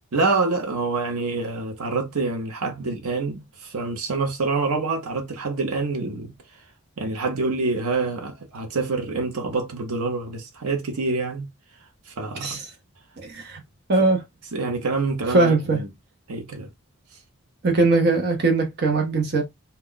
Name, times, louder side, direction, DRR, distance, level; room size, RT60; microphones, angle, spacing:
voice 1, 0.1-6.3 7.0-11.5 12.1-12.6 14.5-15.9 16.3-16.7, right 3 dB, 85° right, 0.7 m, -26 dB
voice 2, 13.2-13.6 13.9-14.2 15.3-15.8 17.6-19.4, right 3 dB, 45° right, 0.7 m, -20 dB
2.2 x 2.2 x 3.6 m
head